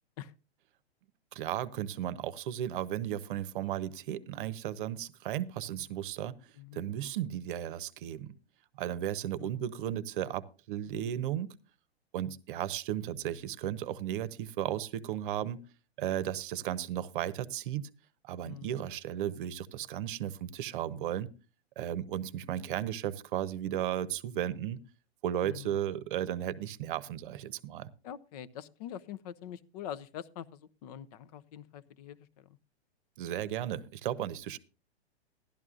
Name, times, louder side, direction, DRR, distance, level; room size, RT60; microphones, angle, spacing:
voice 1, 1.3-6.4 6.7-8.3 8.8-11.5 12.1-15.6 16.0-17.9 18.2-21.3 21.8-24.8 25.2-27.9 33.2-34.6, right 11 dB, 50° right, 16 dB, 0.9 m, -35 dB
voice 2, 18.4-18.8 25.4-25.8 28.0-32.6, left 10 dB, 35° left, 17 dB, 0.6 m, -44 dB
16.0 x 12.0 x 2.5 m, 0.32 s
hypercardioid pair, 140°, 34 cm